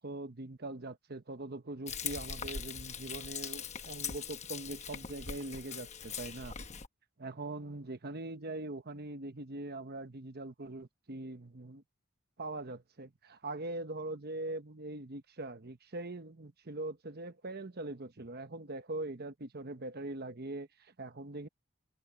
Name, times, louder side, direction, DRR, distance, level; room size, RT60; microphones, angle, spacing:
voice 1, 0.0-6.7 7.2-11.8 12.4-21.5, right 2 dB, 45° right, 1.1 m, -42 dB
Frying (food), 1.9-6.9, left 7 dB, 30° left, 1.0 m, -41 dB
head